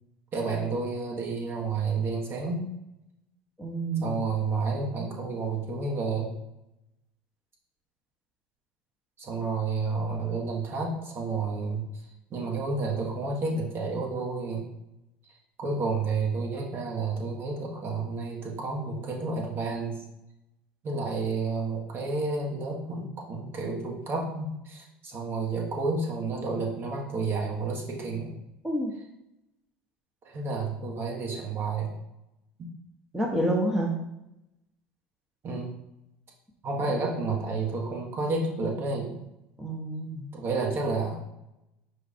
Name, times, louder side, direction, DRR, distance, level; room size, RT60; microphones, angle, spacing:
voice 1, 0.3-2.6 4.0-6.3 9.2-11.8 12.3-14.7 15.6-19.9 20.8-28.4 30.2-31.9 35.4-35.7 36.6-39.1 40.3-41.3, right 3 dB, 45° right, -2 dB, 1.3 m, -30 dB
voice 2, 3.6-4.2 28.6-28.9 33.1-33.9 36.8-36.9 39.6-40.2, right 1 dB, 10° right, -1 dB, 0.8 m, -28 dB
5.2 x 2.4 x 4.2 m, 0.86 s
hypercardioid pair, 75°, 5 cm